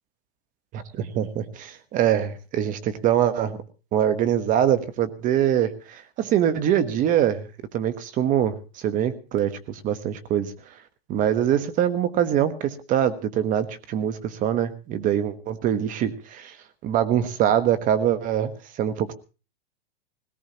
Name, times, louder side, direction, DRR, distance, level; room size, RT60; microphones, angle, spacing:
voice 1, 0.7-3.6 3.9-7.5 7.7-10.5 11.1-16.5 16.8-18.5 18.8-19.1, right 10 dB, 25° right, 14 dB, 1.0 m, -23 dB
19.5 x 17.5 x 2.9 m, 0.33 s
supercardioid pair, 145°, 30 cm